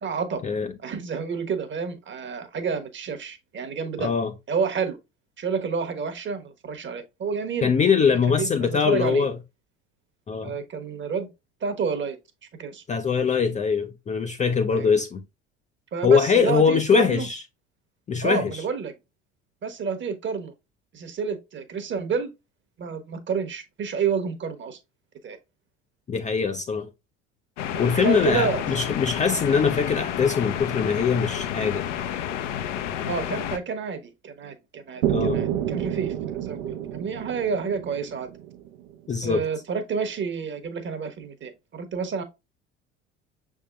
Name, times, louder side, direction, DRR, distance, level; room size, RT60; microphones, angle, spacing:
voice 1, 0.0-0.4 0.8-4.1 4.5-5.0 5.4-7.7 8.1-9.3 10.4-11.3 11.6-12.2 12.6-12.8 14.7-14.9 15.9-17.3 18.2-18.9 19.6-20.5 20.9-22.3 22.8-24.8 25.2-25.4 27.7-28.8 33.0-38.3 39.2-42.2, right 5 dB, 30° right, 1.1 m, -29 dB
voice 2, 4.0-4.3 7.6-9.3 10.3-10.5 12.9-15.2 16.0-17.4 18.1-18.5 26.1-26.9 27.8-31.9 35.1-35.5 39.1-39.4, left 6 dB, 20° left, 0.5 m, -22 dB
sound 1, 27.6-33.6, left 10 dB, 70° left, 0.7 m, -30 dB
sound 2, 35.0-38.9, right 10 dB, 65° right, 0.7 m, -29 dB
6.4 x 3.6 x 2.3 m
figure-of-eight pair, 65°, 37 cm